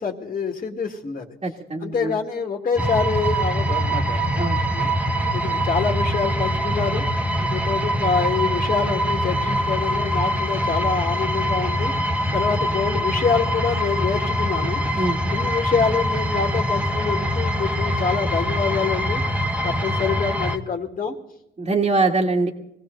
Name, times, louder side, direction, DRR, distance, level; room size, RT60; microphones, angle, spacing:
voice 1, 0.0-1.4 1.8-4.2 4.7-5.0 5.3-7.0 7.5-11.9 12.3-14.8 15.3-19.2 19.6-21.1, left 5 dB, 40° left, 2 dB, 2.0 m, -26 dB
voice 2, 1.4-2.1 4.4-4.6 7.4-7.5 14.9-15.2 21.6-22.5, right 3 dB, 30° right, -3 dB, 1.8 m, -23 dB
sound 1, 2.8-20.6, equal, 5° right, 1.2 m, -23 dB
22.0 x 16.0 x 3.9 m, 0.86 s
cardioid pair, 90°, 20 cm